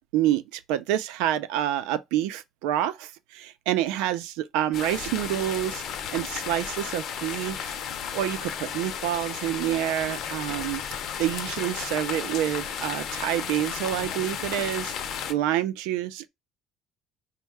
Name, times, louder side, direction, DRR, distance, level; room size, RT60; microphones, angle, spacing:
voice 1, 0.1-5.8 6.1-7.8 8.1-10.8 11.2-14.9 15.3-16.3, right 12 dB, 75° right, 0.5 m, -27 dB
sound 1, 4.7-15.3, left 8 dB, 40° left, 0.7 m, -34 dB
5.3 x 2.2 x 3.5 m
cardioid pair, 180°, 0 cm